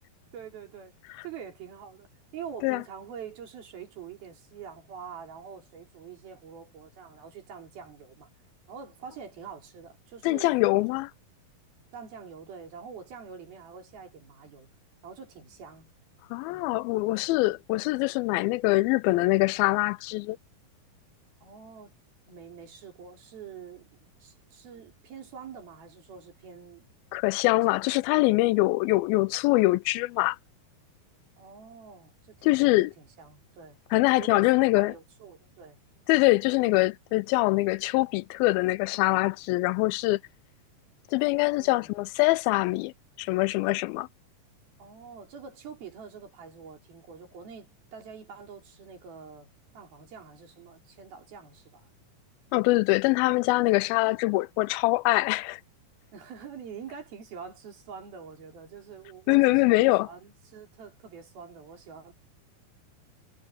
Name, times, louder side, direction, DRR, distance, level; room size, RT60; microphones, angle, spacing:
voice 1, 0.3-1.0 1.2-8.3 8.7-10.7 10.9-11.0 11.9-14.7 15.0-15.9 16.5-16.8 21.4-21.9 22.3-23.9 24.2-26.9 27.7-28.1 31.4-34.5 34.8-35.8 41.6-41.9 44.8-49.5 49.7-51.9 56.1-62.1, right 7 dB, 85° right, 5.6 m, -45 dB
voice 2, 10.2-11.1 16.3-20.4 27.1-30.4 32.4-32.9 33.9-34.9 36.1-40.2 41.1-42.9 43.2-44.1 52.5-55.6 59.3-60.1, left 21 dB, 90° left, 2.4 m, -23 dB
omnidirectional pair, 4.2 m